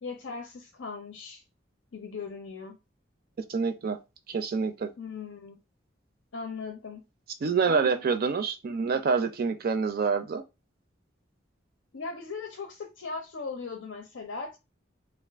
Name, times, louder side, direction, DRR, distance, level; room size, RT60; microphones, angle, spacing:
voice 1, 0.0-1.4 1.9-2.8 5.0-5.6 6.3-7.0 7.7-8.0 11.9-14.6, left 4 dB, 85° left, 0.6 m, -38 dB
voice 2, 3.5-4.0 4.3-4.9 7.4-10.4, right 5 dB, 50° right, 0.4 m, -27 dB
2.4 x 2.4 x 3.4 m
head